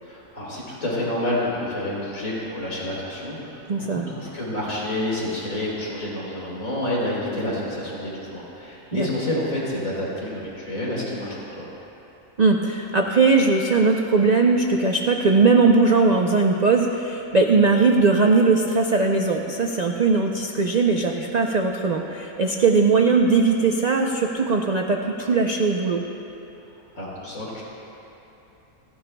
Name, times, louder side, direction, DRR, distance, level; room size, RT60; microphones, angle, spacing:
voice 1, 0.0-11.7 26.6-27.6, left 1 dB, 65° left, -6 dB, 3.9 m, -29 dB
voice 2, 3.7-4.0 8.9-9.1 12.4-26.0, right 4 dB, 55° right, 2 dB, 0.4 m, -19 dB
29.5 x 11.0 x 2.3 m, 2.9 s
omnidirectional pair, 1.5 m